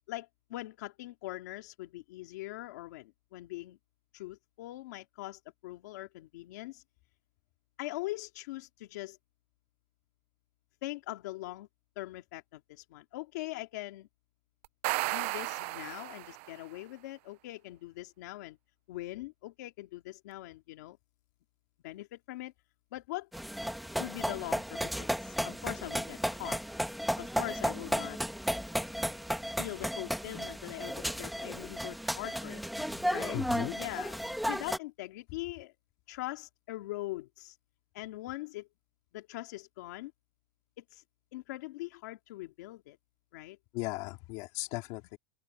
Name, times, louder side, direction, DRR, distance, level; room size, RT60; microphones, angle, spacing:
voice 1, 0.1-3.8 4.1-6.8 7.8-9.2 10.8-11.7 12.0-14.1 15.1-18.6 18.9-21.0 21.8-22.5 22.9-23.3 24.0-26.6 27.2-28.2 29.6-32.6 33.1-35.7 36.1-37.6 37.9-38.7 39.1-40.1 40.8-41.0 41.3-43.0 43.3-43.6, left 18 dB, 80° left, 2.2 m, -42 dB
sound 1, 14.6-16.6, right 23 dB, 50° right, 0.3 m, -34 dB
sound 2, 23.3-34.8, equal, ahead, 1.2 m, -34 dB
voice 2, 33.3-33.8 43.7-45.2, left 21 dB, 45° left, 3.0 m, -37 dB
open air
supercardioid pair, 180°, 9 cm